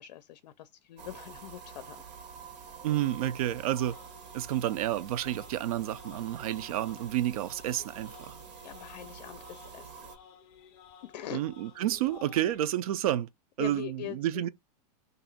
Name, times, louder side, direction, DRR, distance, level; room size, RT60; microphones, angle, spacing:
voice 1, 0.0-2.0 8.6-10.1 11.0-11.4 13.6-14.4, left 12 dB, 80° left, 0.5 m, -42 dB
sound 1, 1.0-10.2, right 6 dB, 80° right, 1.1 m, -48 dB
voice 2, 2.8-4.0 4.3-8.3 11.3-13.3 13.6-14.5, right 12 dB, 60° right, 0.4 m, -30 dB
sound 2, 3.7-12.6, left 8 dB, 25° left, 0.5 m, -55 dB
2.8 x 2.6 x 4.0 m
supercardioid pair, 175°, 21 cm